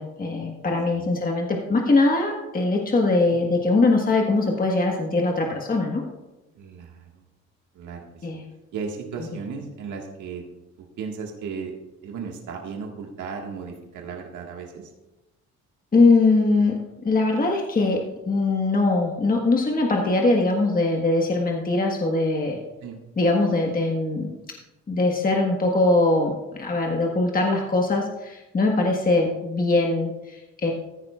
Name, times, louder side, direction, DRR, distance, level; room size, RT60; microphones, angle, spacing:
voice 1, 0.0-6.0 8.2-8.4 15.9-22.6 23.2-24.3 24.9-30.7, left 2 dB, 30° left, 1 dB, 1.4 m, -22 dB
voice 2, 6.5-7.2 7.7-8.3 8.7-10.4 10.8-11.7 12.0-14.9 22.8-23.0, right 5 dB, 80° right, 1 dB, 1.7 m, -35 dB
14.5 x 10.5 x 2.4 m, 1.0 s
cardioid pair, 90°, 30 cm